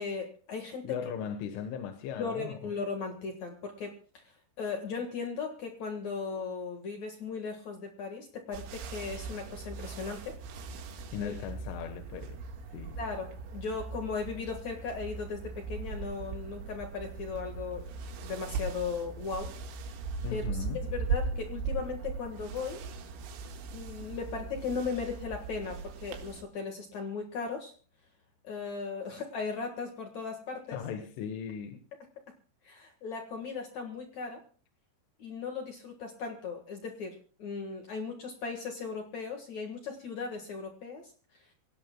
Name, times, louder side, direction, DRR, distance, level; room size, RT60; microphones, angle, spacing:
voice 1, 0.0-1.0 2.2-10.4 11.2-11.3 13.0-18.0 18.2-19.5 20.3-20.4 20.8-22.8 23.7-27.7 28.4-30.8 32.6-34.4 35.2-41.1, left 5 dB, 60° left, 3 dB, 2.0 m, -37 dB
voice 2, 0.8-2.7 11.1-12.4 12.7-13.0 20.2-20.8 30.7-31.8, left 8 dB, 85° left, 6 dB, 3.7 m, -38 dB
sound 1, 8.5-26.4, right 4 dB, 80° right, 4.0 m, -39 dB
25.5 x 17.5 x 2.2 m, 0.40 s
omnidirectional pair, 5.4 m